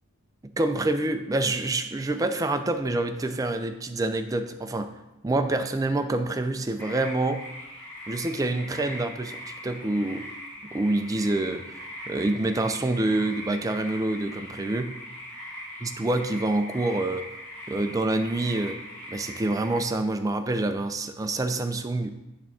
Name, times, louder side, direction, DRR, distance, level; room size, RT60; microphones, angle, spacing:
voice 1, 0.6-4.9 5.2-7.4 8.1-10.3 10.7-14.9 15.8-17.2 17.7-18.8 19.1-22.1, right 2 dB, 15° right, 7 dB, 0.4 m, -27 dB
sound 1, 6.8-19.8, equal, 10° left, 1.6 m, -41 dB
8.3 x 3.4 x 6.1 m, 0.96 s
head